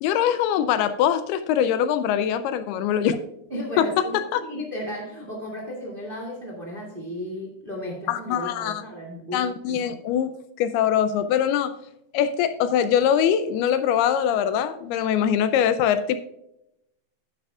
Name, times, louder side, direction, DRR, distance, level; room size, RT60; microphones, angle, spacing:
voice 1, 0.0-3.2 3.8-4.4 8.1-8.8 9.3-10.3 10.6-11.7 12.1-16.2, left 9 dB, 80° left, 11 dB, 2.5 m, -22 dB
voice 2, 3.5-9.9, equal, 20° right, -1 dB, 1.7 m, -34 dB
10.5 x 10.0 x 2.4 m, 0.81 s
omnidirectional pair, 4.7 m